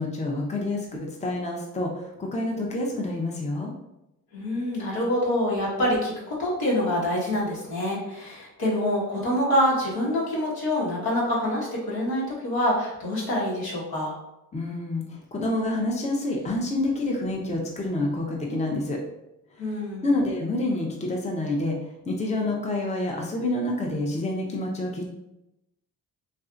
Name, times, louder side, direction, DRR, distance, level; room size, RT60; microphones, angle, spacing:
voice 1, 0.0-3.7 14.5-19.0 20.0-21.8 22.1-25.1, left 2 dB, 20° left, -1 dB, 0.6 m, -28 dB
voice 2, 4.3-14.1 19.6-20.0, left 1 dB, 75° left, -5 dB, 1.5 m, -26 dB
3.2 x 2.6 x 2.5 m, 0.88 s
cardioid pair, 70°, 38 cm